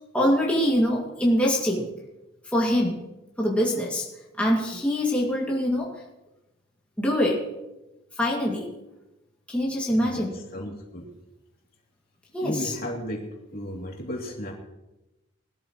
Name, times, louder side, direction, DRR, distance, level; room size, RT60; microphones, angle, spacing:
voice 1, 0.1-1.9 2.5-3.0 3.4-4.0 4.4-5.9 7.0-7.4 8.2-8.7 9.5-10.4 12.3-12.7, equal, 5° left, -4 dB, 2.3 m, -24 dB
voice 2, 9.9-10.3 10.5-11.1 12.4-13.3 13.5-14.5, equal, 50° left, -1 dB, 3.0 m, -34 dB
21.0 x 13.0 x 3.1 m, 0.98 s
head